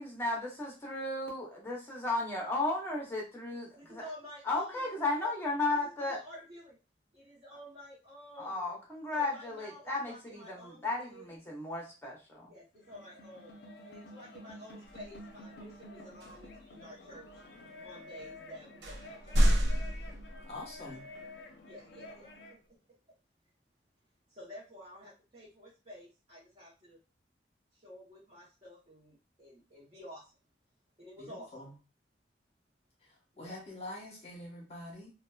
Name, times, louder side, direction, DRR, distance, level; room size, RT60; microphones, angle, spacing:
voice 1, 0.0-4.0 4.4-6.2 8.4-12.5, left 2 dB, 15° left, -2 dB, 0.8 m, -34 dB
voice 2, 3.8-4.9 5.2-5.3 5.7-6.8 7.1-8.7 9.1-11.3 12.5-13.6 13.8-17.4 17.8-19.4 21.6-22.6 24.3-27.0 27.7-30.3 31.0-31.5 33.3-33.6, equal, 35° right, -8 dB, 0.9 m, -51 dB
sound 1, 12.7-22.6, left 1 dB, 65° left, 0.5 m, -50 dB
sound 2, 14.9-15.2 16.2-16.6 17.3-17.4 18.2-18.3 18.8-20.7, equal, 75° right, 0.6 m, -29 dB
voice 3, 20.4-21.1 31.2-31.7 33.0-35.1, left 1 dB, 35° left, -2 dB, 1.0 m, -45 dB
2.7 x 2.2 x 2.3 m, 0.32 s
head